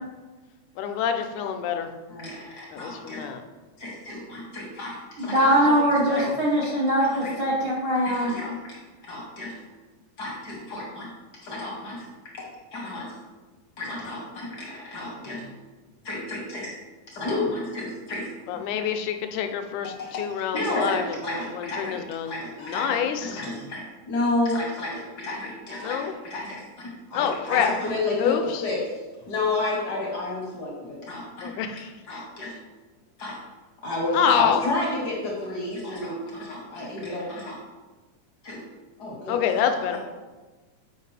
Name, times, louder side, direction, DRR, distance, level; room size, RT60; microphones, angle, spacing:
voice 1, 0.8-1.9 2.7-3.4 5.5-6.4 18.5-21.2 21.5-22.3 22.6-23.4 25.8-26.1 27.1-27.7 28.2-28.6 31.4-32.3 34.1-34.6 39.3-40.0, left 8 dB, 85° left, 6 dB, 2.0 m, -27 dB
voice 2, 2.1-3.3 3.8-5.7 6.1-6.3 7.0-7.4 8.0-8.8 9.0-9.6 10.2-12.0 12.3-13.1 13.8-15.5 16.0-16.7 17.1-18.2 18.5-18.7 19.8-20.3 20.5-29.0 29.3-31.5 32.1-32.5 33.2-33.4 33.8-37.6 38.4-38.6 39.0-39.4 39.7-40.0, left 2 dB, 60° left, -3 dB, 1.0 m, -31 dB
voice 3, 5.2-8.3, equal, 70° right, -6 dB, 1.0 m, -22 dB
7.4 x 5.0 x 3.3 m, 1.3 s
omnidirectional pair, 3.5 m